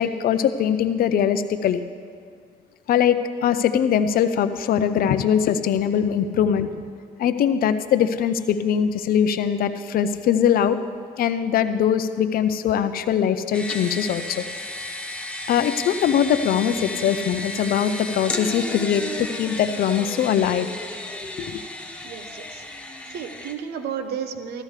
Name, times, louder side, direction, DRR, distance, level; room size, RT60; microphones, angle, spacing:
voice 1, 0.0-1.8 2.9-6.8 7.2-10.8 11.2-14.4 15.5-20.7 21.4-21.6, left 8 dB, 60° left, 10 dB, 0.6 m, -21 dB
sound 1, 13.5-23.5, left 1 dB, 5° left, 1.0 m, -33 dB
voice 2, 22.0-22.6 23.1-24.6, right 7 dB, 70° right, 8 dB, 0.9 m, -32 dB
14.0 x 13.5 x 3.3 m, 2.1 s
cardioid pair, 110°, 17 cm